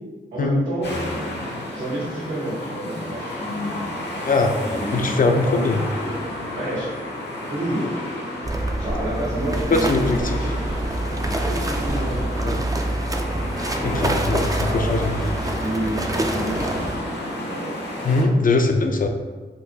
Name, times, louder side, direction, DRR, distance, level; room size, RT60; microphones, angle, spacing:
voice 1, 0.3-1.0 1.7-3.8 4.6-5.8 6.5-6.9 7.5-7.9 8.8-10.6 11.4-12.3 13.7-16.8 17.3-17.8, right 1 dB, 80° right, -13 dB, 1.5 m, -30 dB
sound 1, 0.8-18.2, left 1 dB, 60° left, 0.8 m, -31 dB
voice 2, 4.2-4.6 4.9-5.9 9.7-10.4 12.4-12.5 13.8-15.2 18.0-19.1, left 3 dB, 45° left, 4 dB, 0.5 m, -21 dB
sound 2, 8.4-17.0, right 1 dB, 20° right, 0.4 m, -26 dB
3.8 x 2.2 x 2.8 m, 1.4 s
cardioid pair, 45°, 20 cm